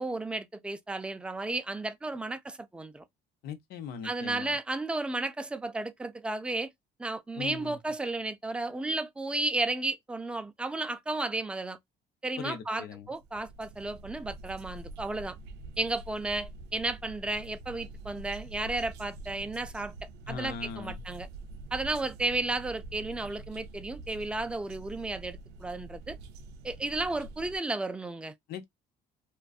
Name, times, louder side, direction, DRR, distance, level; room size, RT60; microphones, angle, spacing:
voice 1, 0.0-3.0 4.0-6.7 7.0-11.8 12.2-15.4 15.8-21.3 21.7-26.2 26.6-28.3, right 2 dB, 5° right, 0.3 m, -33 dB
voice 2, 3.4-4.6 7.4-7.8 12.4-13.1 20.3-21.0 28.5-28.7, left 6 dB, 70° left, 0.7 m, -40 dB
sound 1, 13.0-27.6, right 2 dB, 85° right, 0.4 m, -45 dB
2.4 x 2.2 x 2.3 m
cardioid pair, 110°, 17 cm